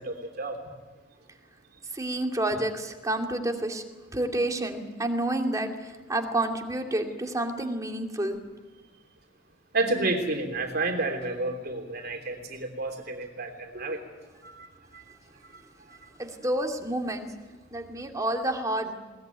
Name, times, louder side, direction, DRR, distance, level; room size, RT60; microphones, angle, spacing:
voice 1, 0.1-0.5 9.7-14.0 14.4-14.7, right 2 dB, 55° right, 4 dB, 3.1 m, -30 dB
voice 2, 1.9-3.8 4.1-8.4 16.2-17.3 17.7-19.0, right 1 dB, 20° right, 3 dB, 2.5 m, -29 dB
22.0 x 19.0 x 9.3 m, 1.3 s
head